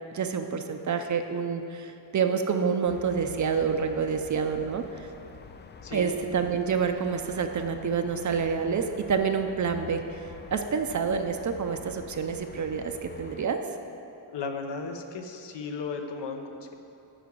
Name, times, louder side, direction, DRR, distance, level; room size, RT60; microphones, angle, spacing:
voice 1, 0.1-5.1 5.9-10.0 10.5-13.6, right 6 dB, 40° right, 6 dB, 0.5 m, -28 dB
sound 1, 2.9-13.5, left 5 dB, 25° left, 0.3 m, -47 dB
voice 2, 14.3-16.8, left 4 dB, 65° left, 4 dB, 1.0 m, -35 dB
11.0 x 4.8 x 7.7 m, 2.9 s
wide cardioid pair, 170°, 45 cm